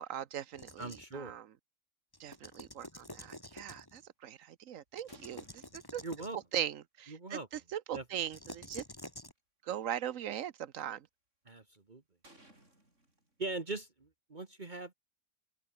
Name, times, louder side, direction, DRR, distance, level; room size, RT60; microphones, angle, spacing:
voice 1, 0.0-1.5 2.2-6.0 6.5-8.8 9.7-11.1, right 10 dB, 90° right, 1.3 m, -40 dB
sound 1, 0.5-1.2 2.1-4.0 4.9-6.4 8.2-9.3, left 1 dB, 15° left, 4.9 m, -49 dB
voice 2, 0.8-1.4 6.0-6.4 7.1-7.5 7.9-8.0 11.4-12.0 13.4-14.9, right 2 dB, 35° right, 1.8 m, -41 dB
sound 2, 3.7-3.8 4.4-6.3 7.5-7.7 8.4-8.5 8.7-9.1 9.8-10.8 11.5-11.8 12.2-13.7, right 1 dB, 70° right, 7.9 m, -62 dB
open air
omnidirectional pair, 1.3 m